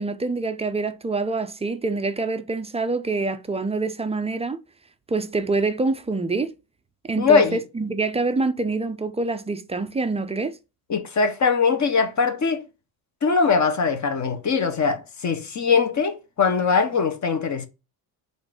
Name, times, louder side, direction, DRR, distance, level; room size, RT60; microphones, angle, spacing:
voice 1, 0.0-4.6 5.1-6.5 7.1-10.6, right 3 dB, 15° right, 0.4 m, -26 dB
voice 2, 7.2-7.6 10.9-12.6 13.2-17.7, left 5 dB, 35° left, 0.9 m, -21 dB
3.9 x 2.6 x 4.7 m
supercardioid pair, 80°, 50 cm